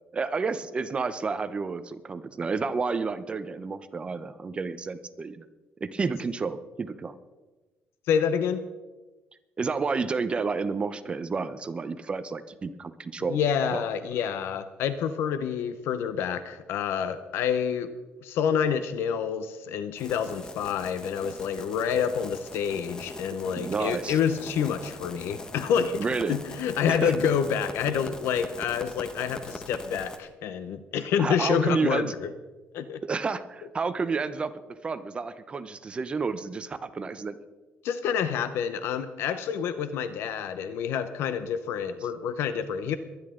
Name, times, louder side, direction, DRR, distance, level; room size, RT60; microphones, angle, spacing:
voice 1, 0.1-5.4 5.8-7.1 9.6-13.4 13.7-13.9 23.6-24.2 26.0-26.4 26.9-27.1 31.2-32.1 33.0-34.5 34.8-37.4, right 4 dB, 25° right, 12 dB, 0.7 m, -30 dB
voice 2, 8.1-8.6 13.3-17.9 18.2-32.3 32.7-33.0 37.8-43.0, left 7 dB, 75° left, 11 dB, 0.8 m, -28 dB
sound 1, 20.0-30.2, left 2 dB, 20° left, 1.0 m, -41 dB
22.5 x 10.5 x 3.8 m, 1.2 s
cardioid pair, 140°, 4 cm